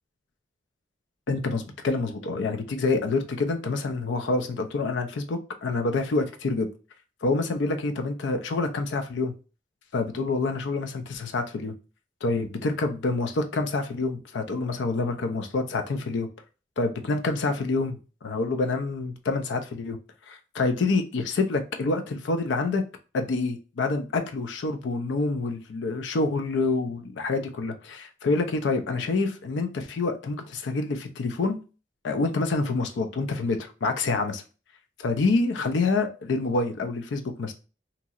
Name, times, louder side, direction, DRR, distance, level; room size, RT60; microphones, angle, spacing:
voice 1, 1.3-6.7 7.2-9.3 9.9-11.7 12.2-16.3 16.8-20.0 20.3-22.8 23.1-31.6 32.0-34.4 35.0-37.5, left 3 dB, 85° left, 7 dB, 0.4 m, -27 dB
2.9 x 2.7 x 2.4 m, 0.34 s
head